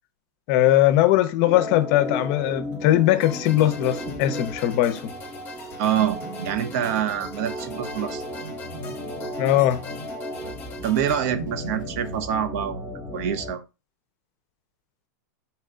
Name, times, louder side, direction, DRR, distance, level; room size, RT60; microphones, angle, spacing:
voice 1, 0.5-5.1 9.4-9.8, left 14 dB, 45° left, 0.5 m, -20 dB
Organ, 1.4-13.6, left 1 dB, 10° right, 0.7 m, -35 dB
sound 1, 1.6-12.2, right 4 dB, 85° right, 1.0 m, -43 dB
sound 2, 3.2-11.2, left 5 dB, 20° left, 0.9 m, -43 dB
voice 2, 5.8-6.2 6.4-8.2 10.8-12.8 13.1-13.6, right 9 dB, 55° right, 0.5 m, -25 dB
4.3 x 2.2 x 3.7 m
supercardioid pair, 135°, 10 cm